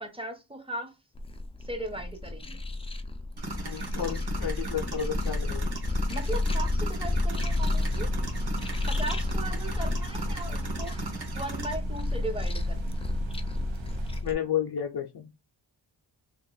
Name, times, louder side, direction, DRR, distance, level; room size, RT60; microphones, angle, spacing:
voice 1, 0.0-0.9 1.7-2.6 6.1-8.1 8.9-11.0 11.4-13.1, right 2 dB, 10° right, 0.7 m, -37 dB
sound 1, 1.1-14.3, left 2 dB, 15° left, 0.4 m, -31 dB
sound 2, 3.4-11.8, right 2 dB, 55° right, 1.2 m, -37 dB
voice 2, 3.6-5.7 14.2-15.3, left 9 dB, 55° left, 0.6 m, -32 dB
sound 3, 7.4-14.2, right 5 dB, 75° right, 0.7 m, -41 dB
3.0 x 2.5 x 3.8 m
wide cardioid pair, 110°, 46 cm